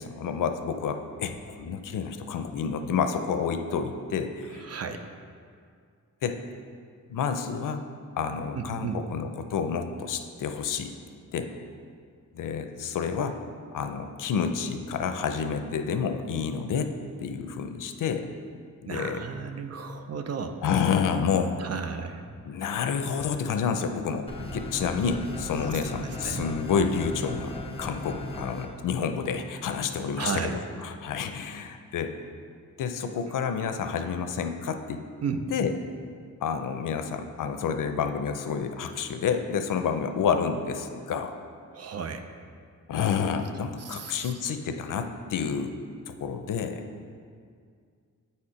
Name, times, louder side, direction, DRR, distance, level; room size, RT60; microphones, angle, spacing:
voice 1, 0.0-4.7 6.2-6.4 7.1-7.8 8.2-10.9 11.3-11.5 12.3-13.4 13.7-16.9 17.2-18.3 18.8-19.2 20.6-21.6 22.5-27.5 27.8-32.2 32.8-35.0 35.5-35.7 36.4-41.3 42.9-45.7 46.1-46.8, left 6 dB, 90° left, 7 dB, 0.6 m, -29 dB
voice 2, 4.6-5.1 8.5-9.0 18.9-20.6 21.6-22.2 25.9-26.5 30.2-30.6 35.2-35.4 41.7-42.3 43.8-44.3, right 6 dB, 55° right, 7 dB, 0.5 m, -34 dB
sound 1, 24.3-28.7, left 2 dB, 20° left, 0.6 m, -37 dB
8.2 x 4.3 x 4.9 m, 2.2 s
wide cardioid pair, 165°, 31 cm